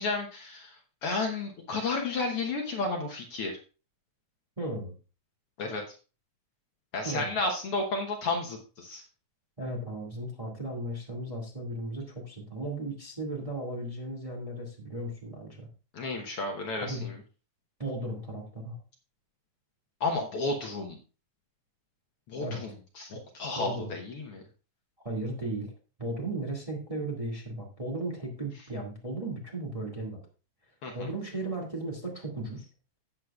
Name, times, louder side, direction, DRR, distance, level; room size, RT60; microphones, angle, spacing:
voice 1, 0.0-3.6 5.6-6.0 6.9-9.0 15.9-17.2 20.0-21.0 22.3-22.7 23.0-24.4 30.8-31.1, left 3 dB, 60° left, 2 dB, 1.8 m, -32 dB
voice 2, 4.6-4.9 7.0-7.3 9.6-15.7 16.8-17.1 17.8-18.8 22.4-22.6 23.5-23.9 25.0-25.7 26.0-30.2 30.9-32.7, right 1 dB, 15° right, 0 dB, 1.6 m, -36 dB
16.0 x 7.3 x 2.4 m, 0.34 s
omnidirectional pair, 3.3 m